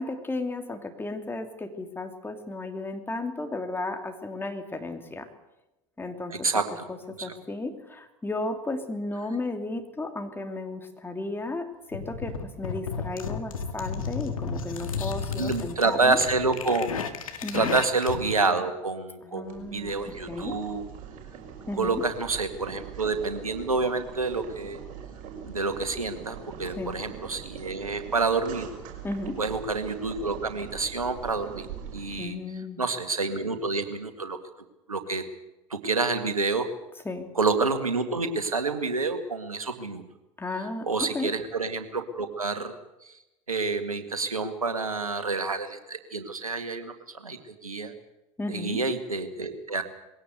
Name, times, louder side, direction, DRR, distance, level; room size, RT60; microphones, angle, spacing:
voice 1, 0.0-5.3 6.0-6.4 6.9-16.2 17.4-17.7 19.2-19.9 20.3-20.6 21.7-22.0 26.6-27.0 29.0-29.4 32.2-32.8 37.0-37.3 40.4-41.3 48.4-48.8, left 2 dB, 10° left, 6 dB, 2.9 m, -34 dB
voice 2, 6.3-6.8 7.3-7.4 15.4-17.1 17.5-20.8 21.8-24.8 25.4-28.7 29.4-31.7 31.9-32.4 32.8-34.4 34.9-35.2 35.7-36.7 37.4-40.0 40.8-42.7 43.0-43.1 43.5-47.9 48.5-49.8, right 3 dB, 85° right, 8 dB, 2.0 m, -28 dB
sound 1, 11.9-18.3, left 5 dB, 75° left, 1.9 m, -33 dB
Boiling, 19.4-32.2, right 7 dB, 50° right, 6.4 m, -42 dB
21.5 x 17.5 x 8.1 m, 0.95 s
figure-of-eight pair, 75°, 18 cm